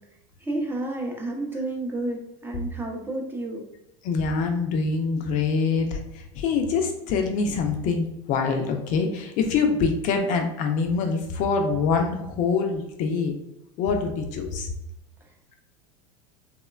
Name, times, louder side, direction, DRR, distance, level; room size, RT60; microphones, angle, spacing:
voice 1, 0.4-3.7, right 2 dB, 10° right, 0 dB, 0.5 m, -30 dB
voice 2, 4.0-13.3 13.8-14.7, left 5 dB, 50° left, 4 dB, 0.4 m, -25 dB
2.9 x 2.1 x 2.3 m, 0.87 s
supercardioid pair, 110°, 17 cm